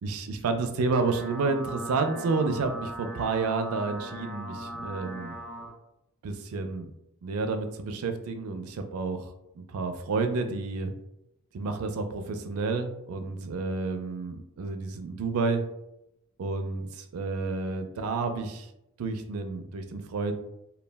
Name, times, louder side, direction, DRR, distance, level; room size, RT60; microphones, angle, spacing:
voice 1, 0.0-5.4 6.2-6.9 7.2-9.3 9.6-10.9 11.5-15.6 16.4-18.7 19.0-20.3, right 4 dB, 80° right, 7 dB, 0.4 m, -30 dB
sound 1, 0.8-5.7, equal, 5° left, 0.3 m, -40 dB
2.2 x 2.1 x 3.2 m, 0.83 s
head